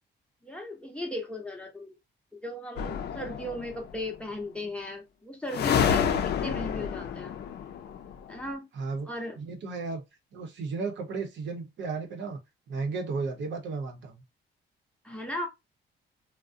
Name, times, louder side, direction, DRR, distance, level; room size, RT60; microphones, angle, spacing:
voice 1, 0.4-2.0 2.3-7.4 8.3-8.7 9.0-9.4 15.0-15.5, left 1 dB, 5° left, 0.8 m, -37 dB
sound 1, 2.8-3.9 5.5-8.4, left 8 dB, 55° left, 0.4 m, -29 dB
voice 2, 8.7-9.1 9.4-10.0 10.3-12.4 12.7-14.2, right 4 dB, 65° right, 0.8 m, -34 dB
2.4 x 2.0 x 2.5 m
cardioid pair, 90°, 20 cm